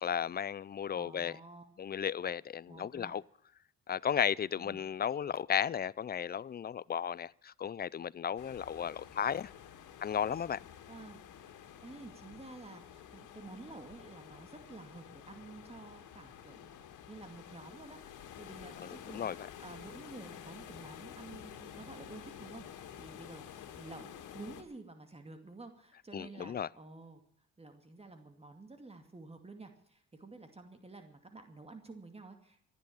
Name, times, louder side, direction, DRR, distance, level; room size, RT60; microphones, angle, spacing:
voice 1, 0.0-1.3 1.8-3.2 3.9-9.5 10.0-10.6 18.8-19.5 26.1-26.7, left 8 dB, 30° left, 0.5 m, -34 dB
voice 2, 1.0-1.7 2.7-3.2 4.5-4.8 10.9-11.2 11.6-16.8 17.1-24.1 24.3-27.2 27.6-32.7, right 3 dB, 20° right, 2.4 m, -51 dB
sound 1, 8.4-24.6, left 9 dB, 85° left, 2.2 m, -50 dB
14.0 x 10.5 x 8.5 m
cardioid pair, 90°, 30 cm